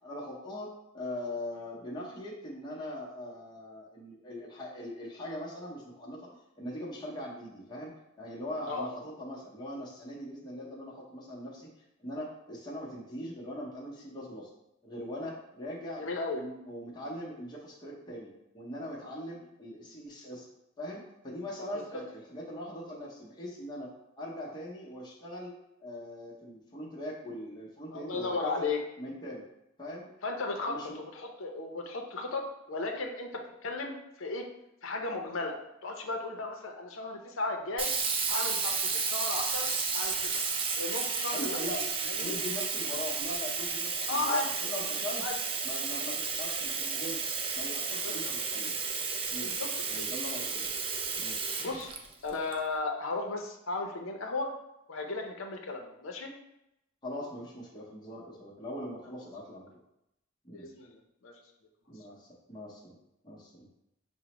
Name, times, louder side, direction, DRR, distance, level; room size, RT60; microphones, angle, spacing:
voice 1, 0.0-6.3 6.6-11.7 12.0-14.5 14.8-16.0 16.3-20.5 20.8-25.5 25.8-28.6 29.0-29.4 29.8-30.1 30.7-31.0 41.3-45.2 45.6-47.2 47.6-48.7 49.3-49.5 49.9-50.7 51.2-51.4 57.0-59.7 60.4-60.7 61.9-63.0 63.2-63.7, left 1 dB, 20° left, -5 dB, 0.8 m, -41 dB
voice 2, 16.0-16.4 27.9-28.8 30.2-33.3 33.6-34.5 34.8-35.5 35.8-37.9 38.3-39.7 39.9-40.4 40.8-41.5 42.1-42.3 44.1-44.5 45.2-45.3 48.0-48.3 49.4-50.0 51.6-51.9 52.2-54.5 54.9-56.3 60.5-61.3, left 3 dB, 70° left, 2 dB, 0.6 m, -35 dB
Sink (filling or washing), 37.8-52.5, right 5 dB, 25° right, 0.4 m, -32 dB
6.1 x 2.1 x 2.9 m, 0.86 s
head